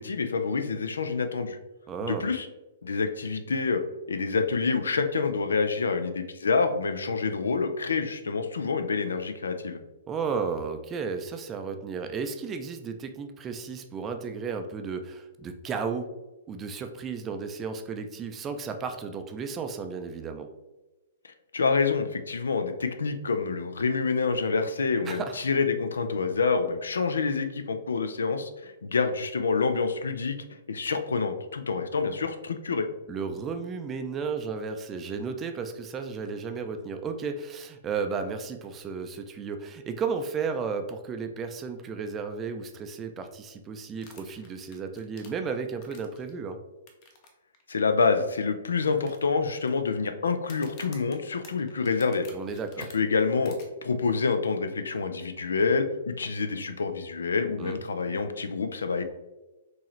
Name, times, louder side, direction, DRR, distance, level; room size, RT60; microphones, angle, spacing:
voice 1, 0.0-1.6 2.0-2.5 2.8-3.8 4.1-9.8 21.2-32.9 47.7-52.3 52.9-59.0, left 4 dB, 70° left, 8 dB, 0.4 m, -27 dB
voice 2, 1.9-2.3 10.1-16.1 16.5-20.5 25.1-25.3 33.1-46.6 52.3-52.9 57.6-57.8, right 5 dB, 20° right, 6 dB, 0.4 m, -33 dB
sound 1, 44.0-46.3 46.9-47.3 47.5-47.6 48.2-48.3 48.9-49.7 50.4-52.9 53.4-53.6, left 4 dB, 40° left, 0.8 m, -51 dB
4.5 x 3.0 x 3.1 m, 1.1 s
figure-of-eight pair, 115°, 0 cm